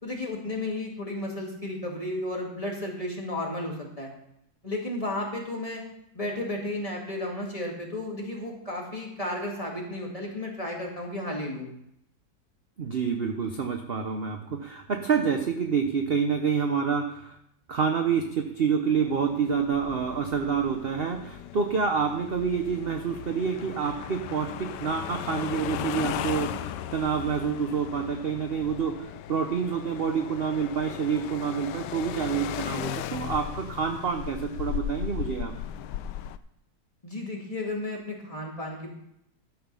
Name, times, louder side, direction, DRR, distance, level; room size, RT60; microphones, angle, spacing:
voice 1, 0.0-4.1 4.6-5.8 6.1-11.7 37.0-38.9, left 1 dB, 20° left, -1 dB, 2.1 m, -33 dB
voice 2, 12.8-17.3 17.7-35.5, right 6 dB, 45° right, 4 dB, 0.8 m, -28 dB
sound 1, 18.9-36.4, left 11 dB, 80° left, 1.2 m, -37 dB
12.0 x 7.0 x 5.5 m, 0.77 s
omnidirectional pair, 1.9 m